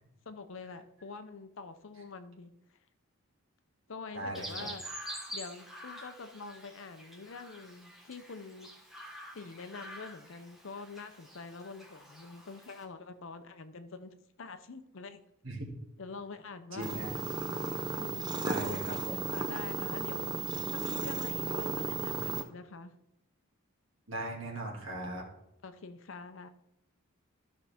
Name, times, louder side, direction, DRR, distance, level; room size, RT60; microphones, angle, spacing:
voice 1, 0.3-2.8 3.9-4.9 5.3-8.7 9.3-15.2 16.0-17.2 17.9-19.0 19.3-20.4 20.7-23.0 25.6-26.5, left 4 dB, 60° left, 10 dB, 0.6 m, -46 dB
voice 2, 4.1-4.7 15.4-15.7 16.7-17.1 18.4-19.2 24.1-25.3, right 1 dB, 60° right, -1 dB, 2.1 m, -39 dB
Chirp tweet, 4.3-12.8, equal, ahead, 1.3 m, -47 dB
sound 1, 16.8-22.4, right 4 dB, 20° right, 0.5 m, -35 dB
13.0 x 5.5 x 3.5 m, 0.83 s
head